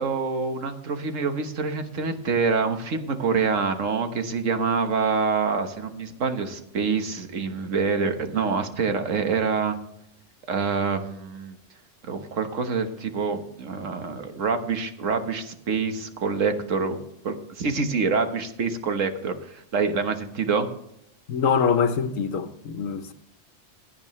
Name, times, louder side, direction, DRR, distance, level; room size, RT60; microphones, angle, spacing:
voice 1, 0.0-9.8 10.5-11.6 12.1-20.7, right 5 dB, 80° right, 1.6 m, -26 dB
voice 2, 21.3-23.1, left 6 dB, 85° left, 1.3 m, -24 dB
16.5 x 9.6 x 3.2 m
omnidirectional pair, 1.3 m